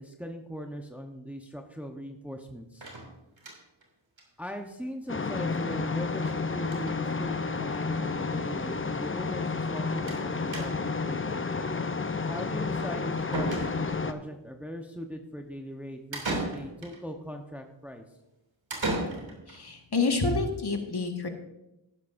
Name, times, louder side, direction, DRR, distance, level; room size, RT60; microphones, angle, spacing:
voice 1, 0.0-2.9 4.4-11.7 12.3-18.0, equal, 5° right, 4 dB, 1.0 m, -40 dB
sound 1, 2.8-3.8 4.2-4.3 4.6-4.7 4.9-5.0 6.1-6.4 6.6-7.0 7.9-8.0 8.2-8.3 10.1-10.3 10.5-11.0 12.8-12.9 13.3-14.1 16.1-17.0 18.7-19.6, right 2 dB, 70° right, 3.0 m, -35 dB
sound 2, 5.1-14.1, left 4 dB, 25° left, 0.7 m, -31 dB
voice 2, 19.5-21.3, left 3 dB, 55° left, 3 dB, 1.8 m, -28 dB
14.0 x 10.5 x 2.7 m, 0.90 s
cardioid pair, 40°, 48 cm